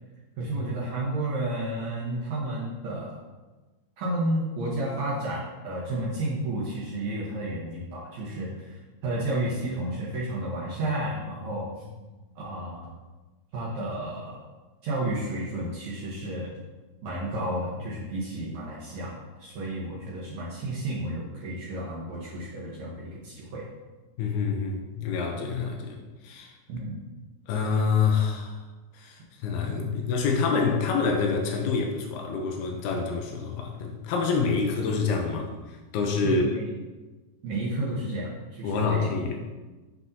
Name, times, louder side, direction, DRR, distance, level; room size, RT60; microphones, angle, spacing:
voice 1, 0.4-3.2 4.0-11.7 12.0-12.1 12.3-12.9 13.5-14.4 14.8-16.5 17.0-19.1 19.4-23.6 26.7-27.1 29.8-30.0 36.2-36.6 37.4-39.1, right 1 dB, 85° right, -6 dB, 1.5 m, -31 dB
voice 2, 24.2-26.5 27.5-28.6 28.9-36.5 38.6-39.4, left 5 dB, 80° left, 2 dB, 2.7 m, -27 dB
7.5 x 5.8 x 2.7 m, 1.2 s
omnidirectional pair, 4.7 m